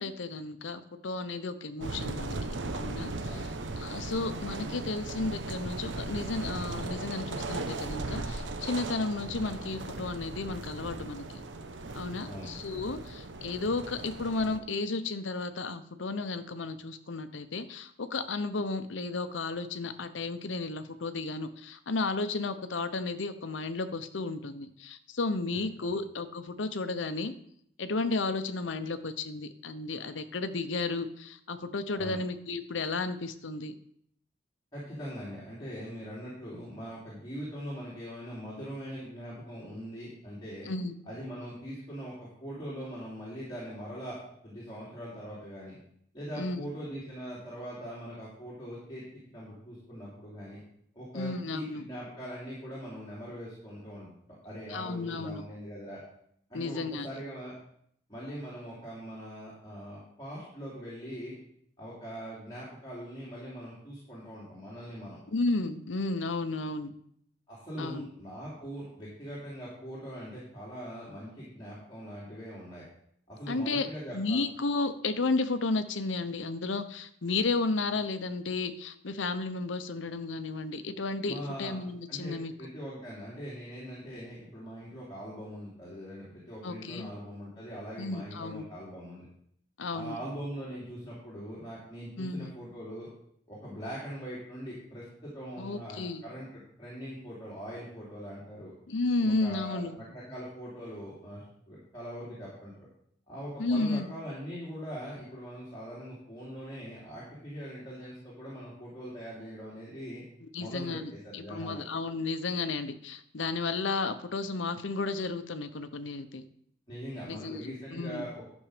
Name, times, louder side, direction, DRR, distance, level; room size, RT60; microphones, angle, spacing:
voice 1, 0.0-2.3 2.7-3.1 3.8-11.4 11.9-27.3 27.8-33.8 40.7-41.0 46.4-46.6 51.1-51.8 54.7-55.4 56.5-57.1 65.3-66.9 67.8-68.1 73.5-73.9 74.1-82.5 86.6-87.1 88.0-88.7 89.8-90.2 92.2-92.5 95.6-96.2 98.9-99.9 103.6-104.1 110.4-116.4 117.3-118.3, left 3 dB, 90° left, 11 dB, 0.8 m, -33 dB
sound 1, 1.8-14.6, right 2 dB, 85° right, 0.9 m, -37 dB
voice 2, 34.7-40.7 41.0-44.2 44.4-45.8 46.1-49.0 49.3-50.6 50.9-54.1 54.4-56.0 56.5-57.5 58.1-61.4 61.8-65.2 67.5-72.8 73.3-74.4 81.2-81.7 82.1-89.2 89.9-93.1 93.5-98.7 99.2-102.7 103.3-110.2 110.6-111.8 116.9-118.4, equal, 25° left, -8 dB, 3.1 m, -42 dB
12.0 x 6.4 x 5.0 m, 0.69 s
head